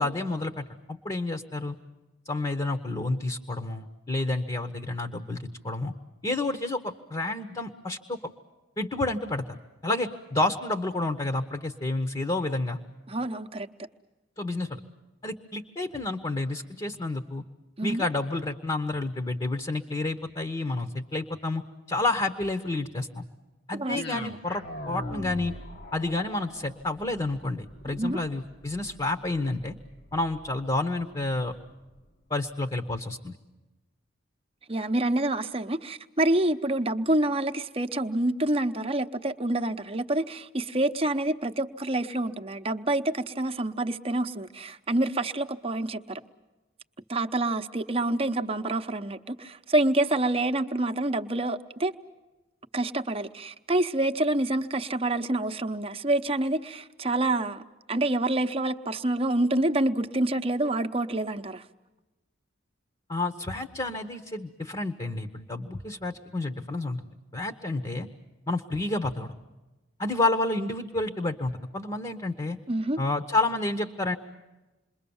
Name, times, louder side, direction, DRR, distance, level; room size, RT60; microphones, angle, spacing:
voice 1, 0.0-1.8 2.2-5.9 6.2-8.2 8.8-9.4 9.8-12.8 14.4-14.8 15.2-17.4 17.8-21.6 21.9-23.2 23.7-25.5 25.9-29.7 30.1-31.5 32.3-33.3 63.1-67.1 67.3-68.1 68.5-69.3 70.0-72.6 73.0-74.2, left 2 dB, 25° left, 6 dB, 1.0 m, -30 dB
voice 2, 13.1-13.7 17.8-18.0 23.8-24.4 27.9-28.2 34.7-46.2 47.1-51.9 52.7-57.6 57.9-61.6 72.7-73.0, right 2 dB, 30° right, 7 dB, 0.9 m, -27 dB
sound 1, 23.9-32.1, left 1 dB, 55° left, 1.2 m, -42 dB
28.0 x 22.0 x 7.1 m, 1.1 s
head